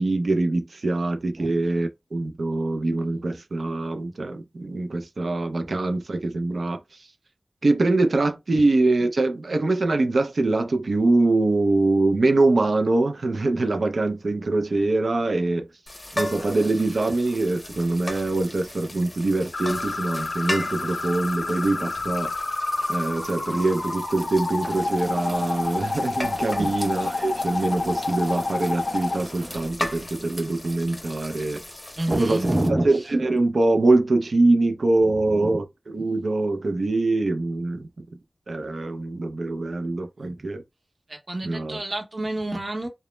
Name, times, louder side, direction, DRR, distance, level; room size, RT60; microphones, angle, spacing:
voice 1, 0.0-6.8 7.6-15.7 16.2-22.3 22.9-31.6 32.2-32.4 32.8-37.9 38.5-40.6 41.4-41.8, right 2 dB, 70° right, 0.4 m, -23 dB
sound 1, 15.9-32.7, left 1 dB, 30° left, 0.6 m, -37 dB
sound 2, 19.5-29.2, left 3 dB, 75° left, 0.5 m, -29 dB
sound 3, 24.6-29.7, equal, 10° right, 0.8 m, -42 dB
voice 2, 31.9-33.1 35.0-35.6 40.2-40.4 41.1-42.9, right 1 dB, 45° right, 0.8 m, -28 dB
2.0 x 2.0 x 3.0 m
wide cardioid pair, 85°, 0 cm